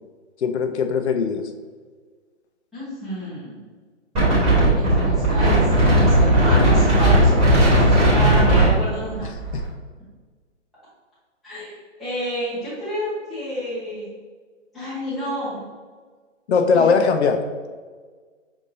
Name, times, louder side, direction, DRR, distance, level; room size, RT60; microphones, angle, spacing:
voice 1, 0.4-1.4 9.5-9.6 16.5-17.4, left 5 dB, 65° left, 6 dB, 0.5 m, -19 dB
voice 2, 2.7-3.6 4.7-9.3 11.4-14.1 14.7-15.6 16.7-16.9, equal, ahead, -13 dB, 0.5 m, -30 dB
Wind, 4.1-9.6, right 1 dB, 15° right, 1.2 m, -16 dB
5.4 x 2.6 x 2.6 m, 1.5 s
figure-of-eight pair, 135°, 37 cm